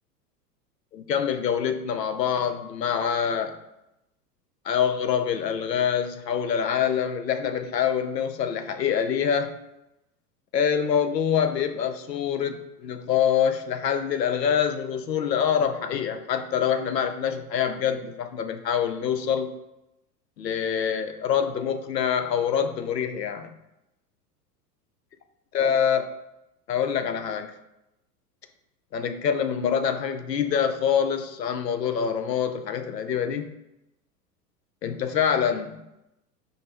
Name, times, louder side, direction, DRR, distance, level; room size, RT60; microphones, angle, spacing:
voice 1, 0.9-3.6 4.6-9.5 10.5-19.5 20.4-23.5 25.5-26.1 26.7-27.5 28.9-33.5 34.8-35.8, left 8 dB, 85° left, 9 dB, 0.5 m, -25 dB
5.1 x 2.1 x 4.2 m, 0.89 s
figure-of-eight pair, 90°, 48 cm